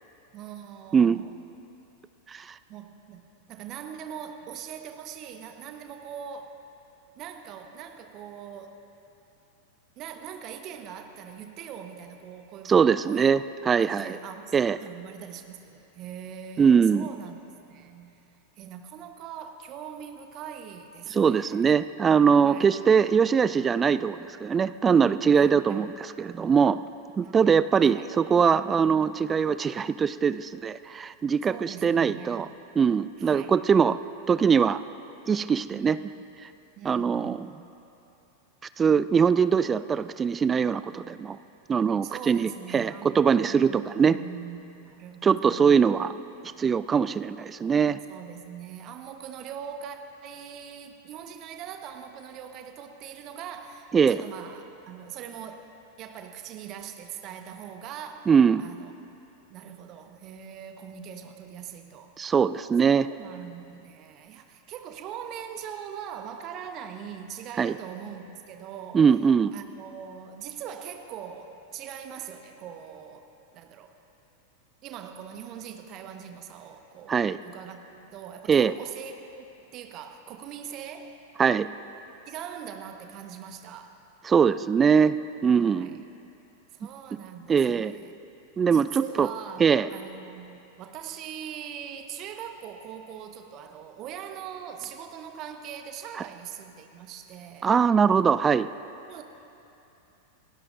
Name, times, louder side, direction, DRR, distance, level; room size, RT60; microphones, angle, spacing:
voice 1, 0.3-1.4 2.7-3.2 3.5-6.6 7.1-8.8 10.0-12.7 13.0-13.4 13.8-14.5 14.8-17.4 17.7-18.2 18.6-21.8 22.4-22.7 25.3-25.8 27.2-27.4 27.8-28.1 31.4-32.5 33.2-33.6 35.7-36.2 36.8-37.4 40.9-41.1 42.0-45.9 46.3-46.4 48.1-55.7 56.0-58.3 58.6-58.9 59.5-62.1 62.8-69.1 69.5-73.3 73.5-73.9 74.8-81.2 82.3-84.0 85.8-86.0 86.7-88.1 88.7-97.7 99.1-99.2, right 8 dB, 35° right, 6 dB, 1.2 m, -41 dB
voice 2, 12.7-14.2 14.5-14.8 16.6-17.1 21.1-26.8 27.2-32.5 32.8-34.0 34.3-34.8 35.3-36.0 36.8-37.5 38.8-41.4 41.7-44.2 45.2-46.1 46.4-48.0 53.9-54.2 58.3-58.6 62.2-63.1 67.6-67.8 68.9-69.5 77.1-77.4 78.5-78.7 81.4-81.7 84.2-85.2 85.4-85.9 87.5-88.0 88.6-89.3 89.6-89.9 97.6-98.7, right 6 dB, 20° right, 15 dB, 0.3 m, -22 dB
29.0 x 16.5 x 2.5 m, 2.9 s
figure-of-eight pair, 90°, 0 cm